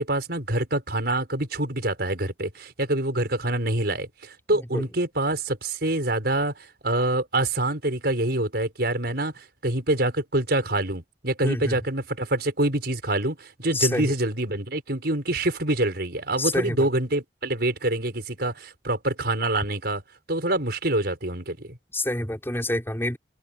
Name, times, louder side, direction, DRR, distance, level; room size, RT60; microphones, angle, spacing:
voice 1, 0.0-20.0 20.3-21.8, right 1 dB, 60° right, 6.1 m, -26 dB
voice 2, 11.4-11.8 13.7-14.1 16.4-16.9 21.9-23.2, left 1 dB, 15° left, 4.9 m, -27 dB
head